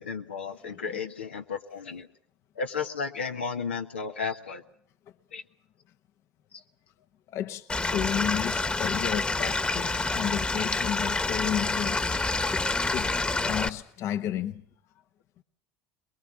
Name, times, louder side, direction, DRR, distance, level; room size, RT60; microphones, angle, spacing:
voice 1, 0.0-2.1 2.5-4.6 5.3-5.4 12.7-12.8, left 5 dB, 85° left, 1.3 m, -33 dB
voice 2, 0.6-1.0 7.3-12.1 12.9-14.6, left 10 dB, 50° left, 1.1 m, -33 dB
Stream / Liquid, 7.7-13.7, left 3 dB, 20° left, 1.4 m, -28 dB
23.0 x 22.5 x 7.3 m
figure-of-eight pair, 70°, 6 cm